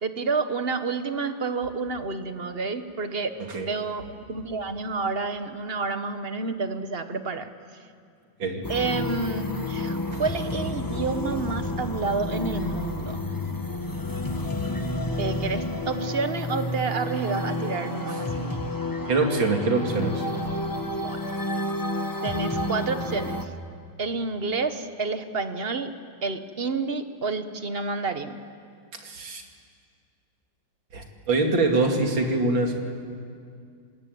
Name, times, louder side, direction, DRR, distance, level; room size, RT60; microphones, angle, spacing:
voice 1, 0.0-3.3 3.6-7.5 8.7-13.2 15.2-18.6 19.0-19.2 20.9-21.2 22.2-23.5 24.0-25.9 26.2-28.4, right 4 dB, 35° right, 9 dB, 1.2 m, -29 dB
sound 1, 8.6-23.4, left 1 dB, 15° left, 1.0 m, -30 dB
voice 2, 19.1-20.2 29.0-29.4 30.9-32.7, right 3 dB, 75° right, 3 dB, 3.2 m, -24 dB
26.5 x 20.5 x 9.4 m, 2.3 s
omnidirectional pair, 2.1 m